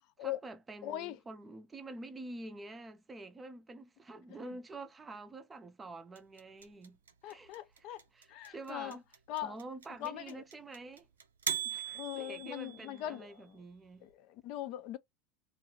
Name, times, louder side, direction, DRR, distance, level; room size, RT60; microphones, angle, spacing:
voice 1, 0.2-7.0 7.2-7.9 8.1-9.0 9.4-11.1 11.6-14.1, right 2 dB, 20° right, 0.5 m, -47 dB
voice 2, 0.8-1.2 4.4-4.5 7.2-8.0 8.3-9.0 9.3-9.5 10.0-10.4 11.9-13.6 14.0-15.0, left 13 dB, 55° left, 0.4 m, -41 dB
sound 1, 6.2-13.1, right 8 dB, 90° right, 0.5 m, -40 dB
2.5 x 2.3 x 3.0 m
hypercardioid pair, 90°, 0 cm